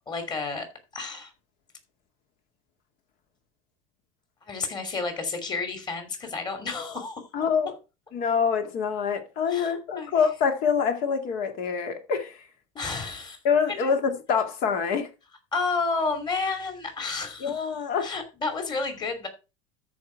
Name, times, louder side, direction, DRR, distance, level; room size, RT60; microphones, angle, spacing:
voice 1, 0.1-0.7 0.9-1.3 4.5-7.2 9.5-10.1 12.7-13.4 13.7-13.9 15.5-17.7 18.0-19.3, left 4 dB, 25° left, 2.9 m, -31 dB
voice 2, 7.3-7.7 8.1-12.4 13.4-15.1 17.4-18.1, left 6 dB, 55° left, 2.1 m, -25 dB
13.5 x 4.9 x 4.5 m
supercardioid pair, 140°, 17 cm